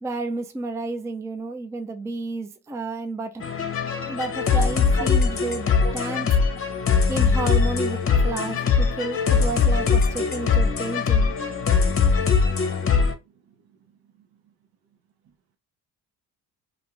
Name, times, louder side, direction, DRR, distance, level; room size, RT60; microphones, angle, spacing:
voice 1, 0.0-3.5 4.1-6.3 7.1-11.3, right 3 dB, 10° right, 0.4 m, -31 dB
sound 1, 3.4-13.1, left 5 dB, 35° left, 0.7 m, -21 dB
voice 2, 4.5-5.2 5.8-6.0 6.3-6.4 6.7-7.1 11.8-13.2 13.5-14.3, right 2 dB, 65° right, 0.8 m, -39 dB
2.5 x 2.3 x 3.0 m
supercardioid pair, 75°, 38 cm